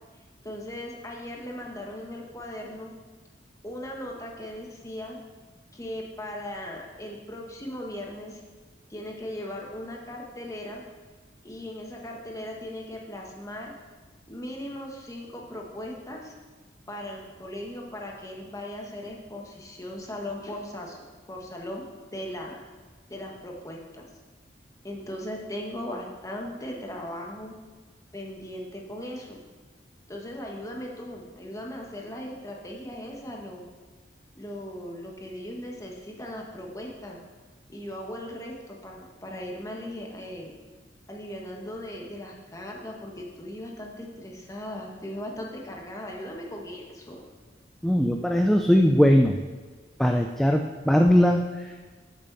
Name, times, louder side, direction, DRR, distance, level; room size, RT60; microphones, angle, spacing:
voice 1, 0.4-2.9 3.6-5.2 5.7-8.4 8.9-10.8 11.4-13.7 14.3-16.3 16.9-21.0 21.3-21.8 22.1-22.6 23.1-24.0 24.8-27.5 28.1-29.4 30.1-33.7 34.4-37.2 37.7-40.5 41.1-47.2, left 1 dB, 20° left, 0 dB, 1.5 m, -38 dB
voice 2, 47.8-49.4 50.0-51.9, equal, ahead, 3 dB, 0.4 m, -20 dB
13.5 x 6.9 x 4.2 m, 1.3 s
head